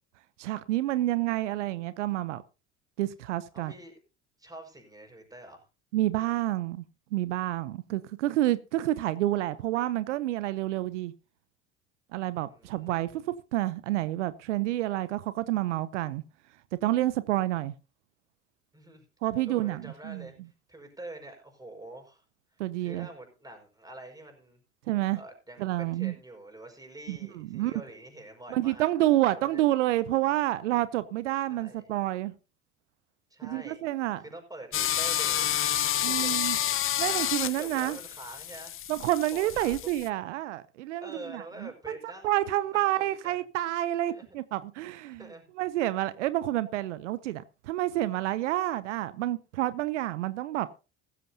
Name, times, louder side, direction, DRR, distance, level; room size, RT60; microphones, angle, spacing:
voice 1, 0.4-2.4 3.0-3.7 5.9-6.8 7.1-11.1 12.1-13.3 13.5-16.2 16.8-17.7 19.2-20.3 22.6-23.1 24.9-25.2 25.6-26.1 27.1-27.7 28.5-32.3 33.4-34.2 36.0-36.6 37.0-38.0 38.9-42.0 42.2-45.3 45.6-50.8, right 15 dB, 85° right, 0.7 m, -29 dB
voice 2, 3.5-4.0 4.4-5.7 12.4-12.9 18.7-19.1 19.5-22.3 22.5-24.6 25.1-29.6 31.5-31.9 33.3-33.8 34.2-35.5 35.9-36.5 37.6-38.8 39.3-39.7 41.0-43.4 44.1-44.2 45.1-45.5, right 2 dB, 10° right, 5.2 m, -46 dB
sound 1, 34.7-40.1, left 11 dB, 35° left, 0.8 m, -29 dB
15.5 x 13.5 x 2.8 m
hypercardioid pair, 75°, 35 cm